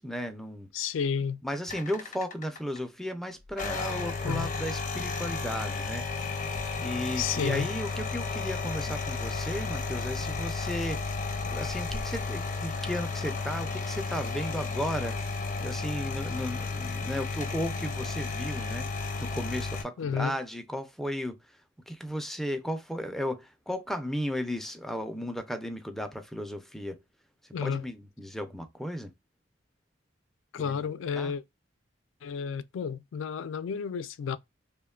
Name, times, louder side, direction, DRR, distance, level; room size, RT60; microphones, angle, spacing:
voice 1, 0.0-0.7 1.4-6.4 6.8-11.2 11.5-21.6 21.9-27.0 27.6-29.1 30.6-31.3, equal, ahead, 0.4 m, -35 dB
voice 2, 0.7-1.4 4.2-4.5 7.2-7.7 20.0-20.4 27.5-27.9 30.5-31.4 32.2-34.4, left 7 dB, 75° left, 0.3 m, -31 dB
sound 1, 1.7-2.8 3.5-19.8, left 4 dB, 40° left, 0.6 m, -33 dB
3.0 x 2.1 x 2.2 m
head